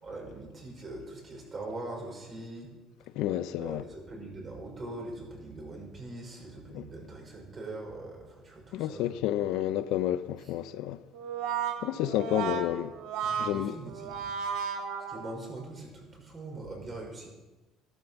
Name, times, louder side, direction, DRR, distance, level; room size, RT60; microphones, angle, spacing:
voice 1, 0.0-2.7 3.6-9.1 10.4-10.5 12.1-12.5 12.9-13.0 13.2-14.3 15.1-17.3, right 2 dB, 30° right, 5.6 m, -42 dB
voice 2, 3.2-3.8 6.7-6.8 8.7-11.0 11.8-12.9 13.4-13.7, left 12 dB, 75° left, 0.7 m, -30 dB
Brass instrument, 11.1-15.6, right 7 dB, 75° right, 1.8 m, -34 dB
14.0 x 12.0 x 7.2 m
cardioid pair, 125°, 0 cm